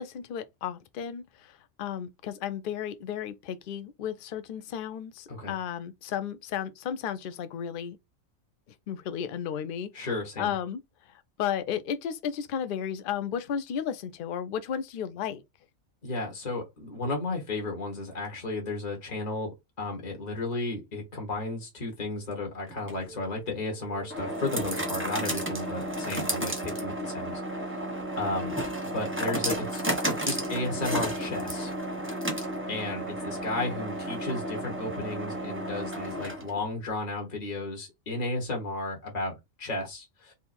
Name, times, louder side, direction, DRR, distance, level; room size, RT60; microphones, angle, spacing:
voice 1, 0.0-8.0 8.9-10.1 10.4-10.8 11.1-15.4, left 8 dB, 55° left, 0.6 m, -34 dB
voice 2, 9.9-10.5 16.0-27.9 28.2-28.6 28.8-31.7 32.2-32.4 32.7-40.3, left 2 dB, 30° left, 1.5 m, -34 dB
sound 1, 22.7-36.7, right 1 dB, 10° right, 0.7 m, -33 dB
3.6 x 2.7 x 4.3 m
omnidirectional pair, 1.4 m